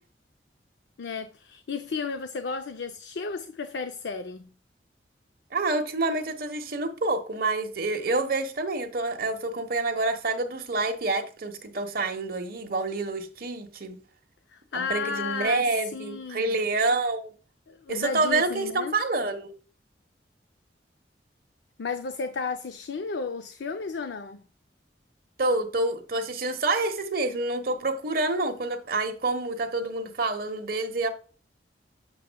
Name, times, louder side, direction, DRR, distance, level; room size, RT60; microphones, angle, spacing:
voice 1, 1.0-4.5 14.5-16.6 17.7-19.0 21.8-24.4, left 4 dB, 85° left, 0.5 m, -33 dB
voice 2, 5.5-14.0 14.7-17.3 17.9-19.5 25.4-31.1, right 2 dB, 55° right, 1.1 m, -27 dB
7.5 x 7.1 x 2.2 m
head